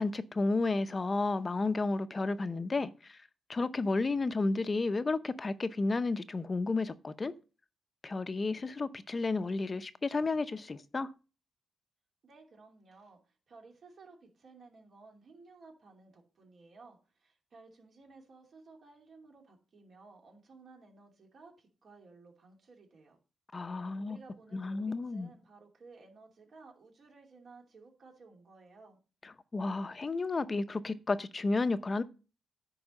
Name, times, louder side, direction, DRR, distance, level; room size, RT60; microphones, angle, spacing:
voice 1, 0.0-2.9 3.5-7.3 8.0-11.1 23.5-24.2 24.5-25.3 29.5-32.0, left 3 dB, 30° left, 0.7 m, -32 dB
voice 2, 12.2-23.2 24.0-29.0, right 3 dB, 55° right, 2.8 m, -56 dB
9.7 x 4.7 x 6.5 m
cardioid pair, 95°, 0 cm